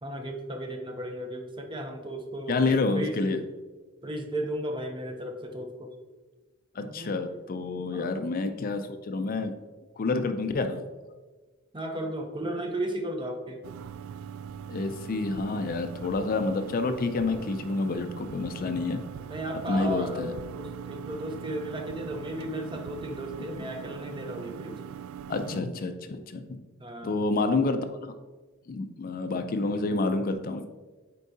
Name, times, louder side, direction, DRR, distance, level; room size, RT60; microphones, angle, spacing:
voice 1, 0.0-3.2 4.0-5.9 6.8-7.4 7.9-8.1 8.5-8.9 11.7-13.6 19.3-24.8 26.8-27.1, right 1 dB, 25° right, 4 dB, 0.7 m, -35 dB
voice 2, 2.5-3.4 6.7-9.5 10.0-10.8 14.7-19.0 19.7-20.3 25.3-26.6 27.0-28.1 28.7-30.7, left 3 dB, 45° left, 8 dB, 0.4 m, -28 dB
sound 1, 13.6-25.6, right 8 dB, 90° right, 0.3 m, -41 dB
8.2 x 4.5 x 2.7 m, 1.3 s
head